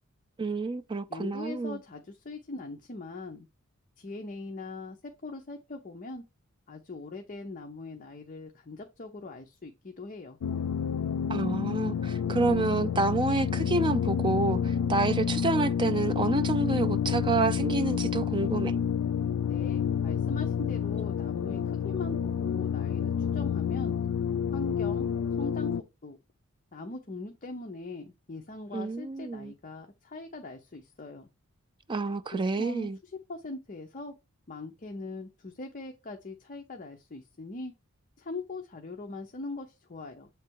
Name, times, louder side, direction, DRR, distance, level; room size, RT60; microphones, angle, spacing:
voice 1, 0.4-1.8 11.3-18.7 28.7-29.5 31.9-33.0, right 3 dB, 20° right, 0.4 m, -28 dB
voice 2, 1.1-3.5 4.0-6.2 6.7-10.4 19.5-24.0 24.5-25.1 25.4-25.7 26.0-26.2 26.7-31.3 32.3-34.1 34.5-37.7 38.2-40.3, left 3 dB, 35° left, 0.6 m, -41 dB
sound 1, 10.4-25.8, left 7 dB, 90° left, 0.3 m, -29 dB
7.5 x 3.3 x 4.5 m
head